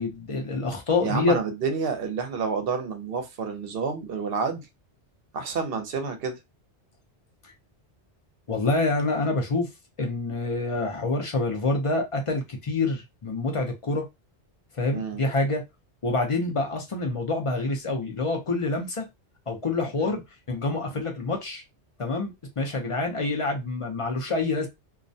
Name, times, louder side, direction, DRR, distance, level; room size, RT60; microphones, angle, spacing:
voice 1, 0.0-1.4 8.5-9.7 10.0-14.1 14.8-15.6 16.0-19.1 19.5-20.2 20.5-21.6 22.0-24.7, left 3 dB, 40° left, 0.5 m, -27 dB
voice 2, 1.0-4.6 5.3-6.3 14.9-15.2 20.0-20.2, right 5 dB, 60° right, 0.8 m, -29 dB
2.3 x 2.1 x 2.6 m
omnidirectional pair, 1.2 m